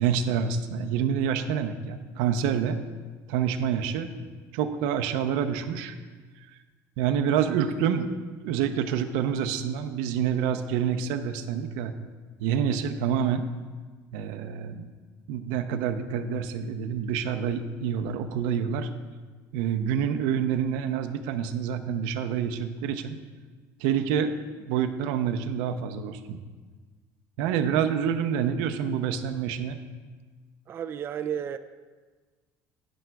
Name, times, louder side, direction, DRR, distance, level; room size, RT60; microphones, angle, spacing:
voice 1, 0.0-2.8 3.3-4.1 4.5-5.9 7.0-8.1 8.4-11.9 12.4-13.5 14.1-14.9 15.3-18.9 19.5-23.1 23.8-24.3 24.7-26.4 27.4-29.8, right 8 dB, 90° right, 8 dB, 0.6 m, -27 dB
voice 2, 30.7-31.6, right 9 dB, 35° right, 9 dB, 0.3 m, -32 dB
12.5 x 9.9 x 2.3 m, 1.4 s
cardioid pair, 130°, 7 cm